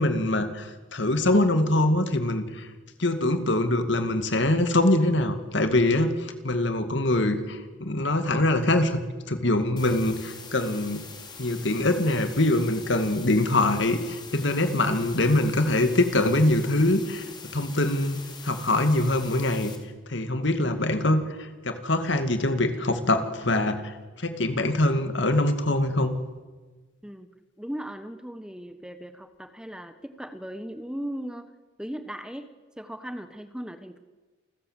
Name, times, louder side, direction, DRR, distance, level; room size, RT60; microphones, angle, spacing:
voice 1, 0.0-2.7 3.0-9.0 9.3-11.0 11.4-19.7 20.1-26.1, left 1 dB, 65° left, 8 dB, 2.3 m, -24 dB
sound 1, 9.8-19.8, left 5 dB, 20° left, 2.7 m, -44 dB
voice 2, 27.6-31.5 31.8-32.5 32.8-34.0, equal, 5° right, 10 dB, 1.0 m, -37 dB
28.0 x 14.5 x 7.5 m, 1.3 s
head